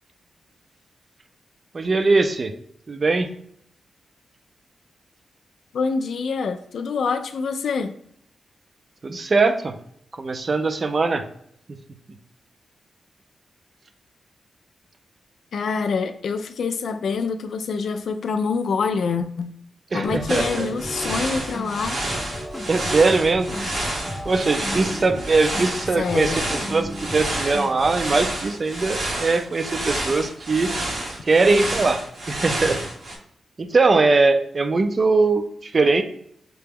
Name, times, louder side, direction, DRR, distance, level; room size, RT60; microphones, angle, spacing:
voice 1, 1.7-2.5 2.9-3.3 9.0-9.7 10.1-11.2 11.7-11.8 19.9-20.7 22.7-23.6 24.2-30.7 31.2-32.0 32.3-32.8 33.6-36.0, right 3 dB, 35° right, 9 dB, 0.4 m, -21 dB
voice 2, 5.7-8.0 15.5-19.5 19.9-22.0 26.0-26.4, left 5 dB, 75° left, 7 dB, 0.3 m, -26 dB
sound 1, 20.0-28.0, equal, 5° left, 0.6 m, -34 dB
sound 2, 20.3-33.1, right 1 dB, 85° right, 1.2 m, -29 dB
5.8 x 2.2 x 3.4 m, 0.69 s
wide cardioid pair, 125°, 0 cm